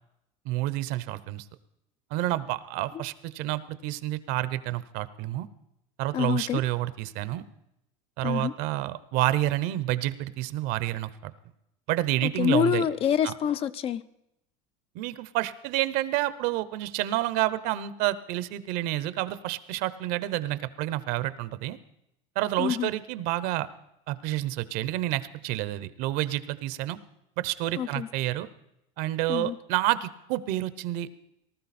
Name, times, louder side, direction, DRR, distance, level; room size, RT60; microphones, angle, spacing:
voice 1, 0.4-1.4 2.1-5.5 6.0-7.5 8.2-11.3 11.9-12.8 13.2-13.3 14.9-21.8 22.4-23.7 24.1-27.0 27.4-28.5 29.0-31.1, right 15 dB, 60° right, 15 dB, 0.8 m, -29 dB
voice 2, 6.1-6.6 8.2-8.5 12.2-14.0 22.6-22.9 27.8-28.1 29.3-29.6, left 9 dB, 35° left, 14 dB, 0.5 m, -26 dB
19.0 x 12.5 x 4.2 m, 0.82 s
supercardioid pair, 135°, 17 cm